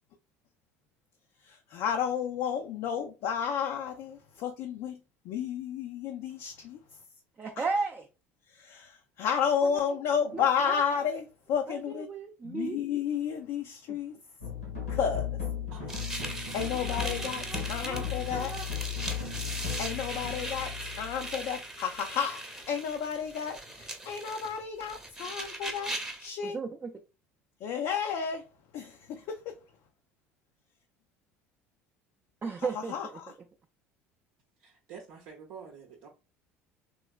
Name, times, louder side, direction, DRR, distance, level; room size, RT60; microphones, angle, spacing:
voice 1, 1.4-5.0 5.2-6.8 7.6-7.7 8.5-12.1 12.4-14.2 14.9-15.3 16.5-18.5 19.5-26.6 27.6-28.4 28.7-29.5 32.9-33.3, left 7 dB, 55° left, 0.5 m, -32 dB
voice 2, 7.4-8.1 9.6-9.8 10.3-10.8 11.7-12.8 13.9-14.0 16.8-18.7 26.4-26.9 32.4-33.2, right 4 dB, 25° right, 0.5 m, -36 dB
sound 1, 14.4-21.7, left 8 dB, 90° left, 1.4 m, -36 dB
voice 3, 15.7-16.1 34.6-36.1, right 6 dB, 65° right, 0.7 m, -48 dB
sound 2, 15.9-26.3, right 1 dB, 10° right, 0.8 m, -39 dB
3.1 x 3.0 x 2.4 m
figure-of-eight pair, 65°, 7 cm